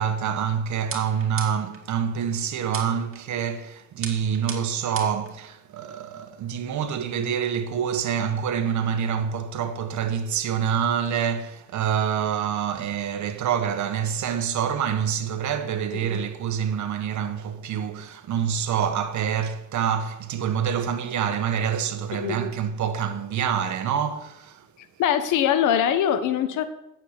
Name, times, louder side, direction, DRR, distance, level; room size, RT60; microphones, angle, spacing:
voice 1, 0.0-24.7, right 8 dB, 70° right, 1.3 m, -26 dB
sound 1, 0.9-1.8 2.7-3.2 4.0-5.3, right 5 dB, 45° right, 2.4 m, -36 dB
voice 2, 25.0-26.7, left 9 dB, 85° left, 1.3 m, -22 dB
9.3 x 7.5 x 8.3 m
cardioid pair, 90°, 30 cm